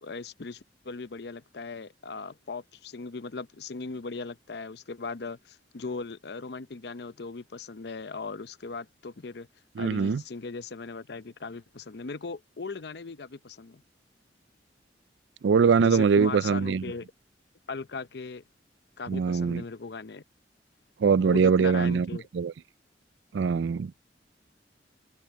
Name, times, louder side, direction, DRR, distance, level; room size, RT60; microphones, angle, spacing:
voice 1, 0.0-9.5 9.8-13.8 15.8-17.1 17.7-18.4 19.0-20.2 21.3-22.3, left 4 dB, 65° left, 0.7 m, -38 dB
voice 2, 9.8-10.2 15.4-16.8 19.1-19.6 21.0-22.1 22.3-22.5 23.3-24.0, right 5 dB, 85° right, 0.4 m, -22 dB
head